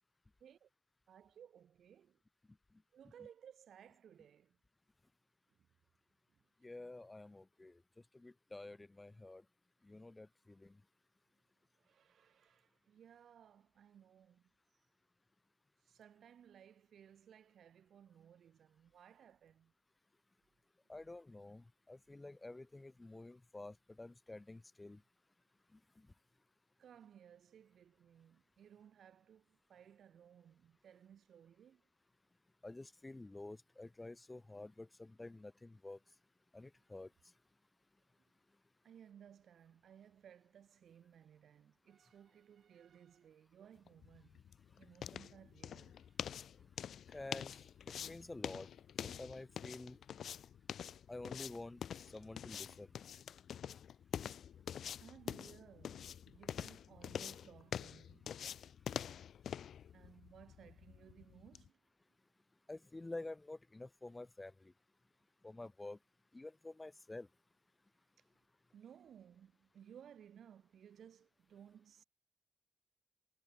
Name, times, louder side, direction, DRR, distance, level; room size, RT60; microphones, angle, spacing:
voice 1, 1.1-2.2 2.9-4.6 11.8-14.4 15.9-19.7 26.8-31.8 38.8-44.4 44.8-46.3 55.0-58.3 59.9-61.8 68.7-72.0, right 9 dB, 85° right, 2.0 m, -60 dB
voice 2, 6.6-7.7 8.1-9.4 9.8-10.7 20.9-25.0 32.6-36.0 36.5-37.1 47.1-47.5 48.0-48.7 49.0-50.0 51.1-51.8 52.1-52.9 62.7-64.5 65.4-66.0 66.3-67.3, left 2 dB, 20° left, 0.5 m, -49 dB
sound 1, 43.9-61.7, left 9 dB, 85° left, 0.8 m, -46 dB
wide cardioid pair, 110°, 0 cm